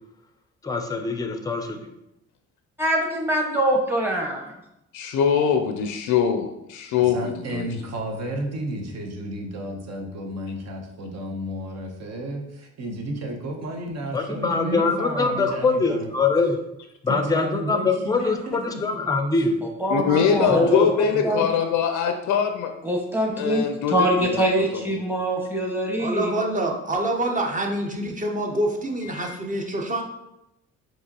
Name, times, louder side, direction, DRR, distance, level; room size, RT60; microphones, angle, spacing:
voice 1, 0.6-1.9 14.1-16.6 17.0-19.6 20.5-20.9, left 4 dB, 10° left, 6 dB, 0.5 m, -23 dB
voice 2, 2.8-4.5 19.8-21.5 22.8-26.3, right 1 dB, 5° right, 0 dB, 1.0 m, -24 dB
voice 3, 4.9-7.7 19.9-22.7 23.4-24.4 29.2-29.3, left 7 dB, 85° left, 6 dB, 0.5 m, -23 dB
voice 4, 7.0-16.1 17.1-18.8 20.3-20.8, right 1 dB, 60° right, 3 dB, 0.9 m, -32 dB
voice 5, 26.0-30.0, right 1 dB, 25° right, 1 dB, 0.7 m, -26 dB
4.7 x 3.0 x 2.9 m, 0.86 s
cardioid pair, 90°, 30 cm